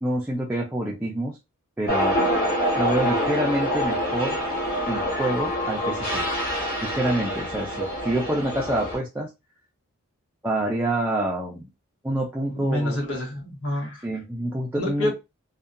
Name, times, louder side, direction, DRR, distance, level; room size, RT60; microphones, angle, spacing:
voice 1, 0.0-1.4 1.8-2.2 2.8-4.4 4.9-6.2 6.8-9.3 10.4-11.7 12.0-13.0 14.0-15.1, right 1 dB, 10° right, 0.4 m, -27 dB
sound 1, 1.9-9.0, equal, 40° left, 0.8 m, -26 dB
voice 2, 12.5-14.1 14.8-15.1, left 1 dB, 80° left, 1.2 m, -28 dB
2.7 x 2.2 x 2.4 m
head